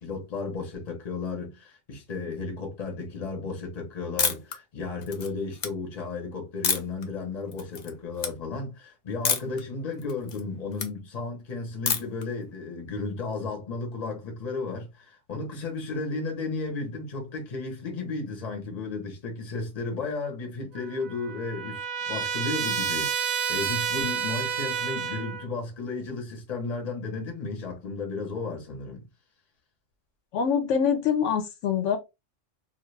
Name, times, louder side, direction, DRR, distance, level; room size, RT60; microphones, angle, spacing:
voice 1, 0.0-29.1, left 3 dB, 35° left, 0.8 m, -34 dB
sound 1, 4.2-4.6 5.0-5.7 6.6-7.0 7.5-7.9 8.2-8.3 9.2-9.6 10.0-10.9 11.9-12.2, left 6 dB, 60° left, 0.4 m, -27 dB
Trumpet, 20.7-25.5, right 7 dB, 70° right, 0.9 m, -30 dB
voice 2, 30.3-32.0, left 7 dB, 75° left, 0.9 m, -24 dB
2.5 x 2.3 x 3.1 m
omnidirectional pair, 1.3 m